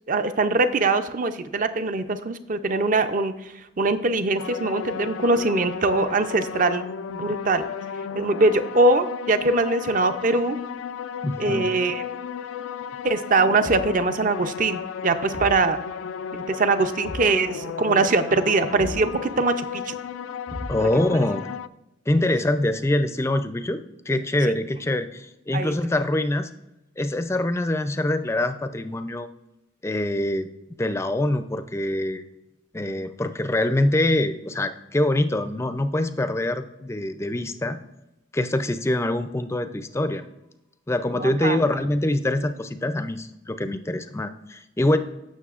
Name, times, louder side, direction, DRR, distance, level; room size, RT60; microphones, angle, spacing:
voice 1, 0.1-6.8 7.1-7.6 8.1-10.6 11.4-12.0 13.0-15.8 16.3-20.0 20.8-20.9 25.5-25.7 41.1-41.6, right 3 dB, 45° right, 10 dB, 0.6 m, -22 dB
sound 1, 4.4-21.7, left 7 dB, 90° left, 0.3 m, -34 dB
voice 2, 11.2-11.7 20.7-21.6 22.1-26.5 27.0-29.3 29.8-30.5 30.8-32.2 32.7-37.8 38.3-40.2 40.9-45.0, left 1 dB, 15° left, 10 dB, 0.4 m, -24 dB
Thump thud, 13.6-14.1 15.3-15.7 17.0-17.4 18.8-19.1 20.5-21.1, left 1 dB, 60° right, 3.4 m, -35 dB
16.5 x 6.5 x 2.4 m, 0.94 s
head